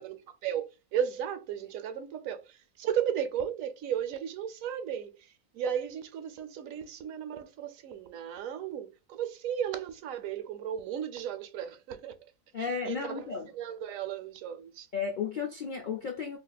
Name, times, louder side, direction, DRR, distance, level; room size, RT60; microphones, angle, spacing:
voice 1, 0.0-12.2 12.6-13.2 13.5-14.9, right 9 dB, 75° right, 0.9 m, -35 dB
voice 2, 12.5-13.5 14.9-16.4, left 6 dB, 60° left, 0.5 m, -33 dB
2.7 x 2.4 x 3.9 m
omnidirectional pair, 1.5 m